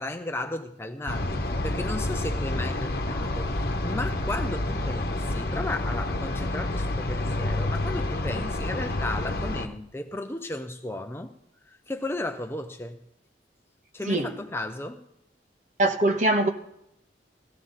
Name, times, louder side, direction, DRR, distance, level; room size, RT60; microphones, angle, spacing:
voice 1, 0.0-11.3 11.7-13.0 13.9-15.0, left 2 dB, 15° left, 0.7 m, -34 dB
sound 1, 1.1-9.7, left 2 dB, 55° left, 1.1 m, -29 dB
voice 2, 15.8-16.5, right 2 dB, 45° right, 1.4 m, -22 dB
16.5 x 14.5 x 4.1 m
head